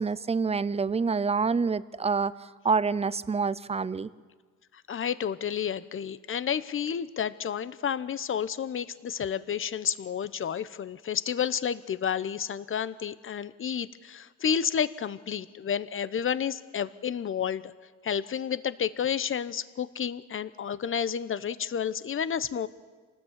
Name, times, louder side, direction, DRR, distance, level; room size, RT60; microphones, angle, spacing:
voice 1, 0.0-4.1, right 5 dB, 20° right, 17 dB, 0.7 m, -27 dB
voice 2, 4.9-17.7 18.0-22.7, left 8 dB, 40° left, 15 dB, 1.0 m, -30 dB
27.5 x 19.0 x 8.2 m, 1.5 s
cardioid pair, 115°, 31 cm